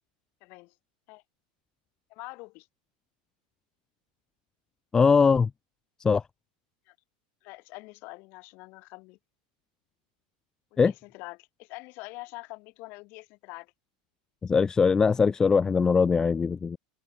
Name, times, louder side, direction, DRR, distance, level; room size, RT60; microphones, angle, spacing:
voice 1, 0.4-0.7 1.1-1.2 2.1-2.7 6.9-7.0 7.4-9.2 10.7-13.7, left 25 dB, 50° left, 6.4 m, -45 dB
voice 2, 4.9-5.5 6.0-6.2 10.8-10.9 14.4-16.8, left 5 dB, 15° left, 0.4 m, -21 dB
supercardioid pair, 140°, 4 cm